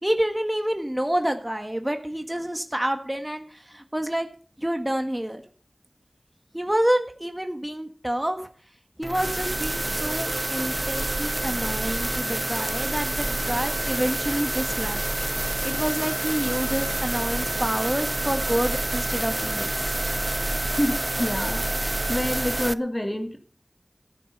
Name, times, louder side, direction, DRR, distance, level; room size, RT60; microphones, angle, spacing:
voice 1, 0.0-4.3 4.6-5.4 6.5-8.5 9.0-15.0 15.6-19.7, right 1 dB, 15° right, 6 dB, 1.7 m, -28 dB
sound 1, 9.0-22.7, right 1 dB, 40° right, 0.6 m, -28 dB
voice 2, 20.6-21.7 22.1-23.4, left 1 dB, 25° left, 5 dB, 2.7 m, -27 dB
14.0 x 9.2 x 5.6 m, 0.42 s
wide cardioid pair, 45°, 0 cm